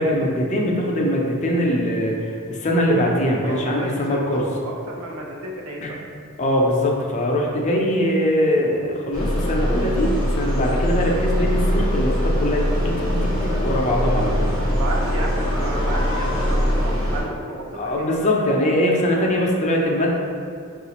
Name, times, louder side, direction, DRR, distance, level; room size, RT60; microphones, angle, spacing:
voice 1, 0.0-2.1 2.5-4.4 5.8-5.9 6.4-14.5 17.7-20.1, left 1 dB, 35° left, -1 dB, 0.5 m, -22 dB
voice 2, 3.4-6.0 14.7-18.3, right 2 dB, 85° right, -1 dB, 0.6 m, -32 dB
sound 1, 9.1-17.2, equal, 65° right, 1.4 m, -22 dB
4.8 x 2.4 x 2.9 m, 2.4 s
head